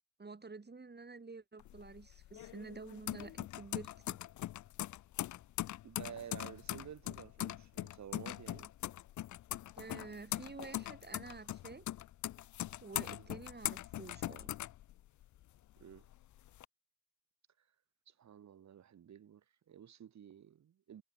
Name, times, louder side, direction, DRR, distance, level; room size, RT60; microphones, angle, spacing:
voice 1, 0.2-4.2 9.8-11.9 12.8-14.5, right 4 dB, 35° right, 4.3 m, -49 dB
sound 1, 1.6-15.4 15.8-16.6, left 14 dB, 70° left, 0.8 m, -41 dB
voice 2, 5.8-8.7 13.1-13.3 15.8-16.1 18.1-21.0, right 9 dB, 65° right, 2.3 m, -52 dB
hypercardioid pair, 45°, 30 cm